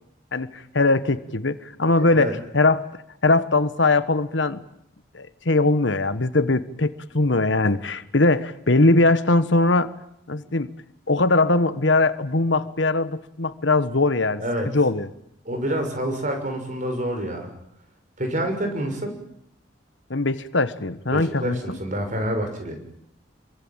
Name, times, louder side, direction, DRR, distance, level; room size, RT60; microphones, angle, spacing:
voice 1, 0.3-2.8 3.2-4.6 5.1-9.9 10.3-10.7 11.1-15.1 20.1-21.8, left 2 dB, 70° left, 13 dB, 1.4 m, -21 dB
voice 2, 2.0-2.3 14.4-14.7 15.4-17.5 18.2-19.2 21.1-22.8, right 1 dB, 40° right, 5 dB, 6.4 m, -27 dB
28.0 x 23.5 x 9.0 m, 0.75 s
head